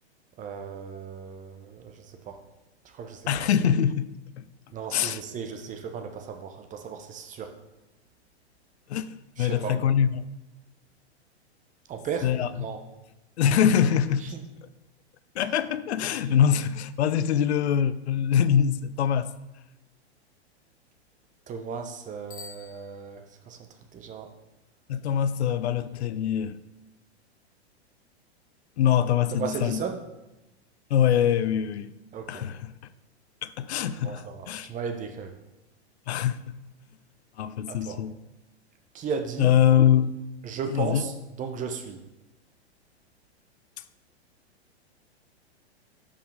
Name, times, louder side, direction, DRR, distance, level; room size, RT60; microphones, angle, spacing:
voice 1, 0.4-2.4 2.8-3.5 4.7-7.5 9.4-9.8 11.9-12.8 14.2-14.4 16.1-16.4 21.5-23.6 23.9-24.3 29.3-30.0 32.1-32.5 34.0-35.4 37.7-38.0 38.9-39.5 40.4-42.0, right 6 dB, 25° right, 0.8 m, -36 dB
voice 2, 3.3-4.1 4.9-5.2 8.9-10.3 12.2-12.5 13.4-14.3 15.4-19.3 24.9-26.6 28.8-29.8 30.9-31.9 32.3-32.7 33.4-34.7 36.1-36.5 37.4-38.1 39.4-40.1 40.7-41.0, left 9 dB, 75° left, 0.5 m, -24 dB
Bicycle bell, 22.2-23.6, left 4 dB, 25° left, 1.3 m, -48 dB
5.3 x 5.1 x 5.1 m
hypercardioid pair, 115°, 33 cm